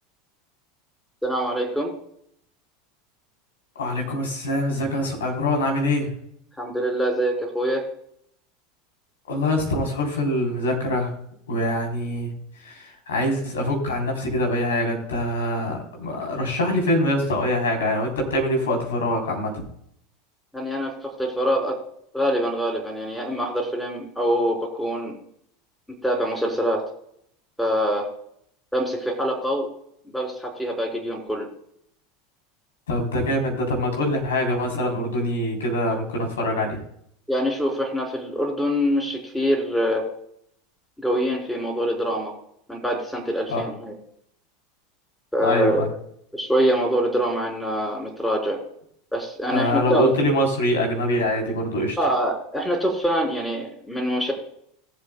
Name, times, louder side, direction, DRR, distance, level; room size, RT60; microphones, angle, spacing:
voice 1, 1.2-2.0 6.6-7.9 20.5-21.8 22.1-25.2 26.0-26.9 27.6-28.1 28.7-29.7 30.1-31.5 37.3-40.1 41.0-42.3 42.7-43.9 45.3-45.9 46.3-48.6 49.1-50.1 52.0-54.3, equal, 5° left, 2 dB, 3.4 m, -24 dB
voice 2, 3.8-6.1 9.3-11.1 11.5-12.3 12.7-19.6 32.9-36.8 43.5-43.6 45.4-45.9 49.5-52.0, left 1 dB, 75° left, 1 dB, 3.5 m, -24 dB
19.5 x 7.7 x 2.2 m, 0.69 s
figure-of-eight pair, 80°, 0 cm